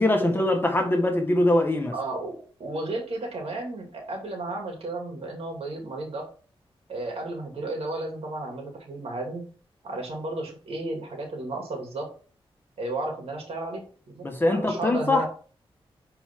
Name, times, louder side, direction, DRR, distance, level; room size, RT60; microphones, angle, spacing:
voice 1, 0.0-1.9 14.2-15.3, left 1 dB, 20° left, 1.6 m, -22 dB
voice 2, 1.9-6.3 6.9-9.4 9.8-12.1 12.8-15.3, right 2 dB, 80° right, 2.7 m, -33 dB
10.0 x 4.5 x 3.8 m
wide cardioid pair, 100°, 10 cm